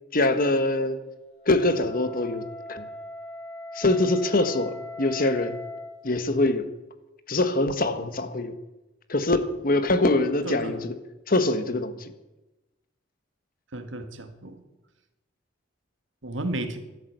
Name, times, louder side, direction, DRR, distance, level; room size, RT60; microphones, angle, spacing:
voice 1, 0.1-1.0 1.4-2.9 3.7-5.6 6.0-6.7 7.3-8.6 9.1-10.9 11.3-12.1, left 2 dB, 50° left, 1.4 m, -24 dB
Wind instrument woodwind instrument, 1.3-6.0, left 2 dB, 5° left, 6.7 m, -40 dB
voice 2, 10.4-10.8 13.7-14.6 16.2-16.8, right 1 dB, 80° right, 1.9 m, -33 dB
13.0 x 12.5 x 8.0 m
head